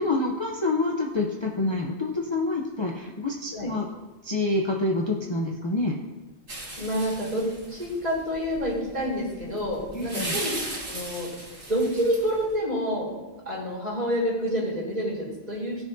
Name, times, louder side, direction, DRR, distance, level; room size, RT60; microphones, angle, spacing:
voice 1, 0.0-3.9 4.2-6.0 9.9-10.3, left 2 dB, 30° left, -2 dB, 0.7 m, -27 dB
sound 1, 6.5-12.5, right 2 dB, 70° right, 2.1 m, -37 dB
voice 2, 6.8-10.5 10.9-11.3 11.7-13.2 13.4-15.8, equal, 35° right, -6 dB, 3.3 m, -28 dB
16.5 x 6.5 x 2.7 m, 1.2 s
omnidirectional pair, 1.1 m